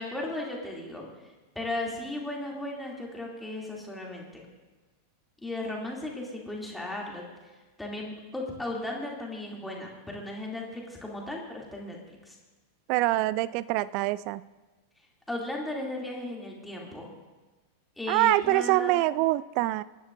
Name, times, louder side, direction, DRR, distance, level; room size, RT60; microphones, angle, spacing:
voice 1, 0.0-4.4 5.4-7.2 7.8-12.0 12.2-12.4 15.3-17.1 18.0-19.0, left 2 dB, 5° left, -2 dB, 2.7 m, -36 dB
voice 2, 12.9-14.4 18.1-19.8, right 17 dB, 45° right, 18 dB, 0.3 m, -25 dB
23.0 x 11.5 x 2.6 m, 1.2 s
figure-of-eight pair, 90°, 0 cm